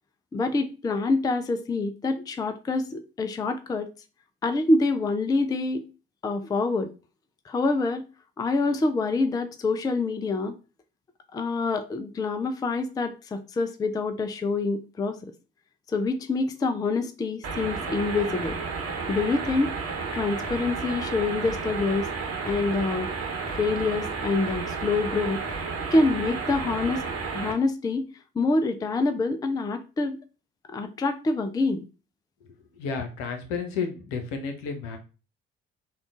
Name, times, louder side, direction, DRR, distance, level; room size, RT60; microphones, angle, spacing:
voice 1, 0.3-3.9 4.4-5.9 6.2-6.9 7.5-8.1 8.4-10.6 11.3-15.3 15.9-18.6 19.1-19.7 20.1-22.1 22.5-23.1 23.6-25.4 25.9-27.1 27.3-28.1 28.4-30.2 30.7-31.9, left 3 dB, 15° left, 0.4 m, -26 dB
sound 1, 17.4-27.5, right 4 dB, 50° right, 1.1 m, -32 dB
voice 2, 32.4-35.0, left 5 dB, 65° left, 0.9 m, -32 dB
3.6 x 2.4 x 3.6 m
figure-of-eight pair, 45°, 30 cm